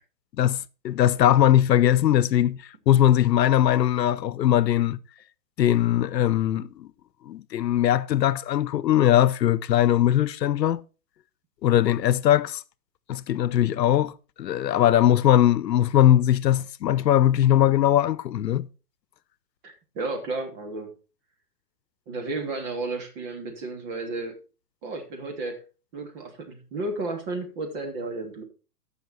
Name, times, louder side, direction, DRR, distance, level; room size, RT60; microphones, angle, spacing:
voice 1, 0.8-2.6 2.9-5.0 5.6-6.9 7.3-10.8 11.6-12.6 13.1-14.1 14.4-18.7, left 11 dB, 90° left, 0.8 m, -20 dB
voice 2, 19.6-20.9 22.1-24.3 24.8-25.6 25.9-28.4, right 2 dB, 35° right, 2.9 m, -33 dB
14.5 x 5.8 x 4.3 m
hypercardioid pair, 150°, 48 cm